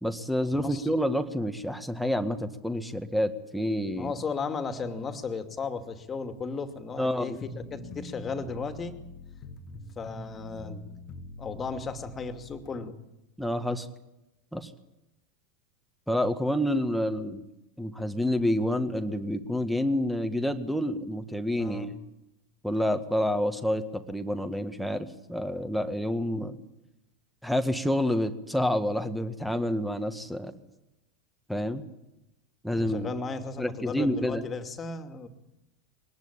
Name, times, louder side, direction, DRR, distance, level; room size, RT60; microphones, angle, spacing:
voice 1, 0.0-4.1 7.0-7.4 13.4-13.9 14.5-14.7 16.1-17.4 17.8-22.0 22.6-26.6 27.4-30.5 31.5-31.8 32.6-33.1 33.6-34.4, equal, ahead, 6 dB, 1.8 m, -28 dB
voice 2, 0.6-0.9 3.9-9.0 10.0-11.0 11.4-13.0 21.6-21.9 26.3-26.5 32.7-35.3, left 4 dB, 25° left, 7 dB, 2.6 m, -35 dB
sound 1, 7.4-12.7, left 3 dB, 40° left, 2.0 m, -44 dB
23.5 x 19.0 x 8.8 m, 0.92 s
figure-of-eight pair, 85°, 0 cm